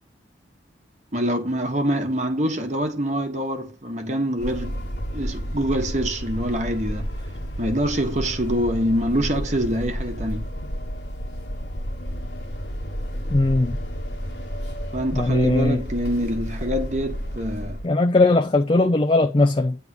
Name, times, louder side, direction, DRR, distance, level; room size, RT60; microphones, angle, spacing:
voice 1, 1.1-4.9 5.1-7.1 7.6-10.5 14.9-17.8, equal, 40° right, 1.2 m, -25 dB
sound 1, 4.4-17.9, equal, 75° left, 1.6 m, -31 dB
voice 2, 13.3-13.8 15.1-15.8 17.8-19.8, left 2 dB, 30° left, 0.5 m, -19 dB
9.6 x 3.5 x 6.2 m
head